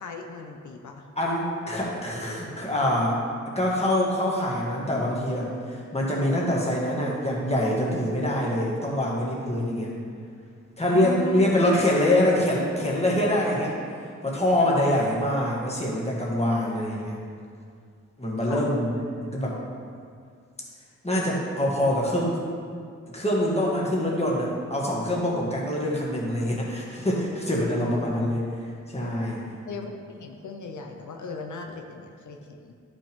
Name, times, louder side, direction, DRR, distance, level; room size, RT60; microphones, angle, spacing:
voice 1, 0.0-1.1 10.9-11.7 14.8-15.1 18.4-18.7 27.8-28.3 29.6-32.7, left 3 dB, 90° left, 3 dB, 0.7 m, -37 dB
voice 2, 1.2-3.2 3.6-9.9 10.8-17.2 18.2-18.9 19.2-19.6 21.0-22.4 23.1-28.5 28.9-29.4, left 1 dB, 20° left, -4 dB, 1.8 m, -25 dB
11.5 x 5.5 x 3.6 m, 2.2 s
wide cardioid pair, 85°, 29 cm